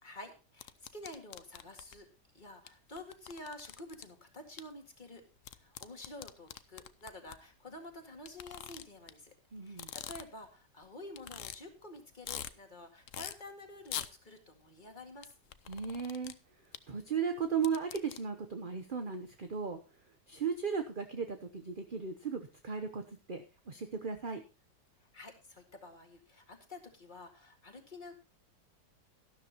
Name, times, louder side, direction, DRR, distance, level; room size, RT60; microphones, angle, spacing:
voice 1, 0.0-2.1 2.3-5.2 5.5-9.3 9.6-15.3 25.1-28.1, left 2 dB, 25° left, 5 dB, 2.1 m, -49 dB
sound 1, 0.6-2.0 2.7-2.8 3.0-4.0 4.6-4.7 5.4-7.4 8.3-9.1 9.7-10.5 10.8-10.9 11.2-11.6 12.0-12.5 13.1-13.3 13.9-14.1 15.2-16.3 16.7-16.8 17.4-18.2, left 10 dB, 60° left, 0.9 m, -43 dB
voice 2, 9.5-9.9 15.7-16.3 16.9-19.8 20.3-23.0 23.3-24.4, right 6 dB, 40° right, 6 dB, 0.8 m, -36 dB
13.0 x 12.5 x 2.9 m, 0.33 s
omnidirectional pair, 1.9 m